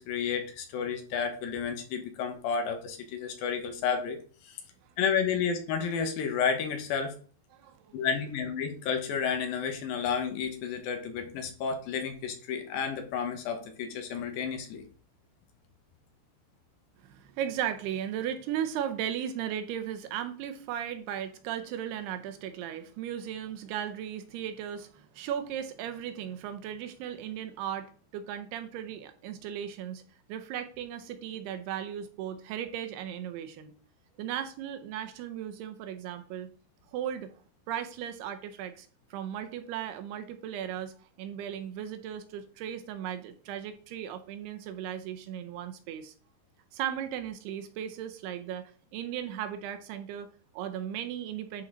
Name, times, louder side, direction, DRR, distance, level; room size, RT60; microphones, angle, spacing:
voice 1, 0.0-4.2 4.4-4.6 5.0-7.2 7.9-14.8, left 6 dB, 70° left, 5 dB, 2.8 m, -31 dB
voice 2, 7.5-8.1 17.0-30.0 30.3-33.7 34.2-36.5 36.9-37.3 37.7-46.1 46.7-51.6, right 10 dB, 80° right, 8 dB, 2.7 m, -36 dB
11.0 x 4.3 x 3.9 m, 0.42 s
omnidirectional pair, 4.7 m